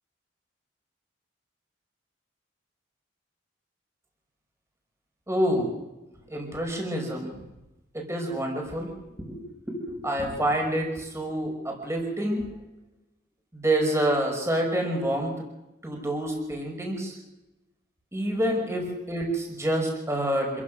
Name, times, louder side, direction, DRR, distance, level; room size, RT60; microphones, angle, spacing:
voice 1, 5.3-5.8 6.3-7.3 7.9-8.9 9.2-12.5 13.5-15.3 15.8-17.2 18.1-20.6, right 1 dB, 15° right, 1 dB, 5.5 m, -27 dB
27.0 x 16.0 x 6.4 m, 1.0 s
head